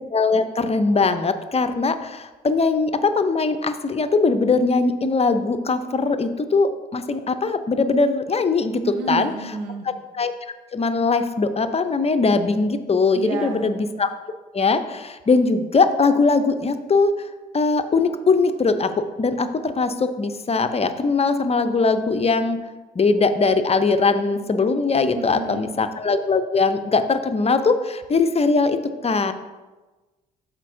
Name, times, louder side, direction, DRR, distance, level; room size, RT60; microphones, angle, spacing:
voice 1, 0.1-8.8 9.1-9.3 9.9-10.3 10.7-14.1 14.5-17.1 17.5-22.6 23.0-28.8 29.0-29.3, left 4 dB, 30° left, 9 dB, 0.7 m, -21 dB
voice 2, 8.8-9.9 13.1-13.7 25.1-25.7, right 4 dB, 80° right, 3 dB, 1.0 m, -30 dB
13.0 x 4.4 x 2.7 m, 1.2 s
hypercardioid pair, 50°, 21 cm